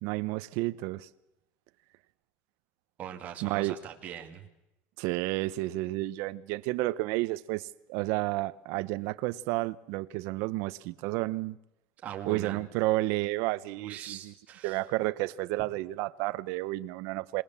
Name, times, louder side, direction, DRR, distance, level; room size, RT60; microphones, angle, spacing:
voice 1, 0.0-1.1 3.4-3.8 5.0-11.6 12.3-14.3 14.6-17.4, right 19 dB, 60° right, 0.9 m, -31 dB
voice 2, 3.0-4.5 12.0-12.7 13.8-14.8, right 9 dB, 30° right, 2.3 m, -41 dB
27.0 x 19.5 x 7.4 m
cardioid pair, 175°, 5 cm